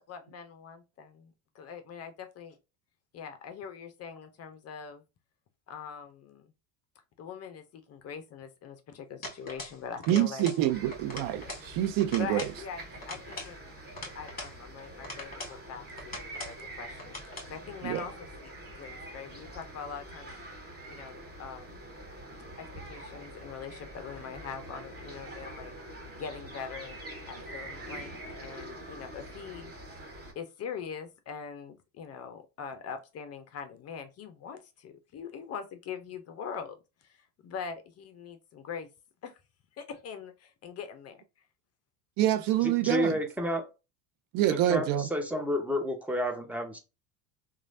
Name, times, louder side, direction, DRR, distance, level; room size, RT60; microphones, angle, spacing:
voice 1, 0.1-2.6 3.1-5.0 5.7-6.5 7.2-10.5 12.2-13.7 14.1-18.1 18.4-18.5 18.8-20.3 20.9-21.8 22.6-25.7 26.1-27.0 27.3-29.7 30.4-38.9 39.2-39.4 39.8-41.2, left 7 dB, 35° left, 0.5 m, -42 dB
sound 1, 9.2-9.8 10.0-10.6 10.9-11.7 12.0-12.6 13.0-14.6 15.0-15.6 16.0-16.6 17.0-17.5, left 2 dB, 20° left, 1.6 m, -42 dB
voice 2, 10.1-12.5 17.8-18.0 42.2-43.2 44.3-45.1, right 13 dB, 50° right, 0.5 m, -26 dB
sound 2, 10.7-30.3, right 1 dB, 20° right, 1.7 m, -45 dB
voice 3, 42.6-43.7 44.5-46.8, left 1 dB, 5° right, 0.7 m, -30 dB
3.0 x 2.3 x 2.5 m
hypercardioid pair, 90°, 45 cm